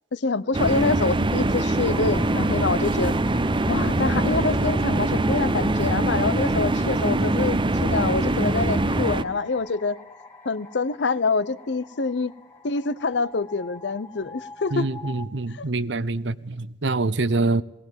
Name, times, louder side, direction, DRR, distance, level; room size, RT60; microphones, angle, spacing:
voice 1, 0.1-3.2 3.7-10.0 10.4-12.3 12.6-14.9 15.5-15.7, left 4 dB, 70° left, 0.7 m, -26 dB
sound 1, 0.5-9.2, right 2 dB, 30° right, 0.7 m, -23 dB
sound 2, 1.8-15.3, left 4 dB, 15° left, 2.7 m, -44 dB
voice 2, 14.7-17.6, right 3 dB, 80° right, 0.8 m, -25 dB
19.0 x 18.5 x 7.5 m
head